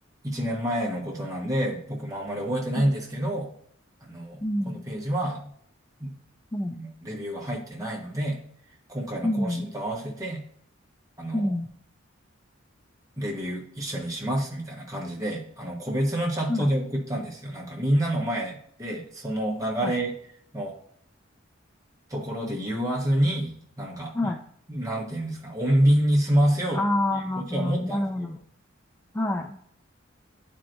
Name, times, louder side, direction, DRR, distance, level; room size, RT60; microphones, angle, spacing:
voice 1, 0.2-3.5 4.0-5.5 6.0-6.1 6.7-8.4 8.9-10.4 11.2-11.5 13.2-20.1 20.5-20.8 22.1-24.3 24.7-26.8 27.1-28.4, right 1 dB, 15° right, -2 dB, 1.2 m, -28 dB
voice 2, 4.4-4.8 6.5-6.8 9.2-9.7 11.3-11.7 16.5-16.7 19.8-19.9 24.1-24.4 26.7-28.4 29.1-29.6, left 1 dB, 10° left, 2 dB, 0.3 m, -27 dB
9.4 x 4.5 x 2.6 m, 0.65 s
head